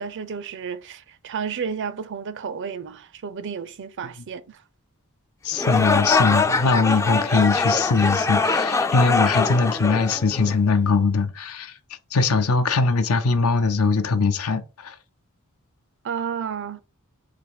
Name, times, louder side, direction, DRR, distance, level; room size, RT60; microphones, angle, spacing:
voice 1, 0.0-4.6 16.0-16.8, right 6 dB, 60° right, 0.5 m, -32 dB
voice 2, 5.4-11.7 12.1-14.9, left 4 dB, 85° left, 0.7 m, -21 dB
sound 1, 5.5-10.7, left 3 dB, 15° left, 0.3 m, -23 dB
4.2 x 2.6 x 4.7 m
head